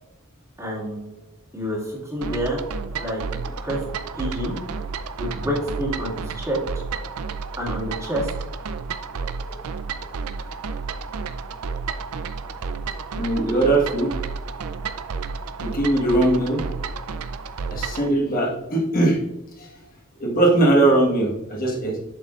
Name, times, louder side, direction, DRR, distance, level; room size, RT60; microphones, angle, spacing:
voice 1, 0.6-1.0 1.5-2.6 3.0-3.2 3.6-3.8 4.1-4.6 5.2-6.6 7.6-8.3, equal, 15° right, -4 dB, 2.0 m, -27 dB
sound 1, 2.2-18.1, right 5 dB, 85° right, 0.5 m, -31 dB
voice 2, 13.1-14.1 15.6-16.6 17.7-19.2 19.6-19.7 20.2-22.0, right 2 dB, 40° left, -2 dB, 1.4 m, -20 dB
7.6 x 6.6 x 2.4 m, 0.99 s
head